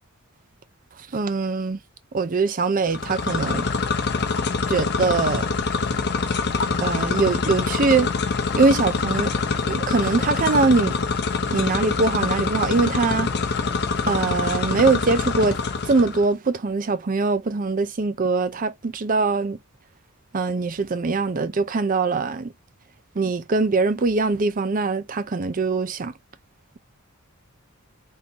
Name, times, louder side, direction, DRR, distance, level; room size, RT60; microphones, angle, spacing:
voice 1, 1.1-1.8 2.1-3.7 4.7-5.5 6.8-8.1 8.5-9.3 9.7-11.0 11.5-13.3 14.1-15.6 15.9-19.6 20.3-22.5 23.2-26.1, right 4 dB, 40° right, 0.5 m, -22 dB
sound 1, 2.9-16.3, left 4 dB, 50° left, 0.6 m, -25 dB
3.7 x 2.6 x 2.8 m
head